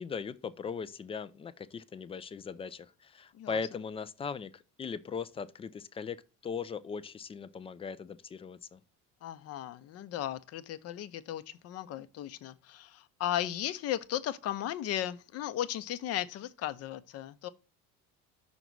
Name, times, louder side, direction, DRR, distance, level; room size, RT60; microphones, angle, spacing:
voice 1, 0.0-6.2 6.4-8.8, left 6 dB, 20° left, 0.3 m, -39 dB
voice 2, 9.2-17.5, left 12 dB, 45° left, 0.6 m, -36 dB
6.1 x 4.0 x 5.9 m
cardioid pair, 140°, 33 cm